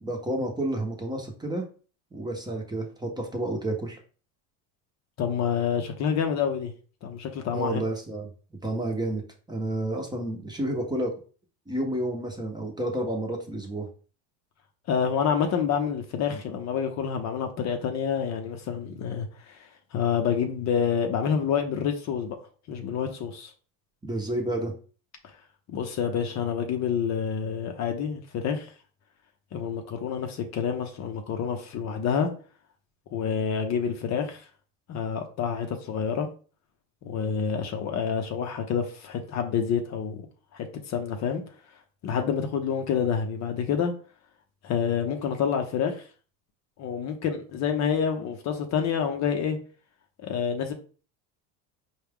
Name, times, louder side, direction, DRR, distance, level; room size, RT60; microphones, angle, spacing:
voice 1, 0.0-1.6 2.1-4.0 7.5-8.3 8.6-9.2 9.5-11.1 11.7-13.9 24.0-24.7, right 1 dB, 10° right, 0.8 m, -30 dB
voice 2, 5.2-6.7 7.0-7.8 14.9-22.4 22.7-23.5 25.7-28.7 29.5-32.3 33.1-34.4 34.9-36.3 37.0-40.2 40.5-41.4 42.0-43.9 44.6-46.0 46.8-49.6 50.2-50.7, left 7 dB, 45° left, 0.6 m, -28 dB
4.5 x 2.3 x 3.4 m
supercardioid pair, 115°, 40 cm